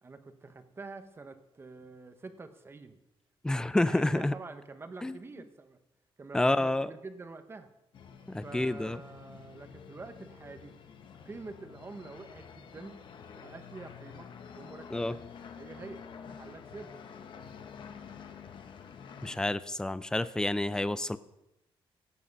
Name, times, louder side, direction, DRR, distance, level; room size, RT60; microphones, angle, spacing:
voice 1, 0.0-3.0 3.5-5.8 6.2-7.7 8.4-10.7 11.2-13.0 13.4-14.3 14.5-15.2 15.6-16.9, right 3 dB, 25° right, 9 dB, 1.0 m, -47 dB
voice 2, 3.4-4.3 5.0-5.2 6.3-6.9 8.3-9.0 14.9-15.2 19.2-21.2, left 1 dB, 5° left, 15 dB, 0.4 m, -29 dB
sound 1, 7.9-19.4, left 6 dB, 55° left, 1.0 m, -49 dB
17.0 x 7.6 x 5.3 m, 0.92 s
cardioid pair, 140°, 10 cm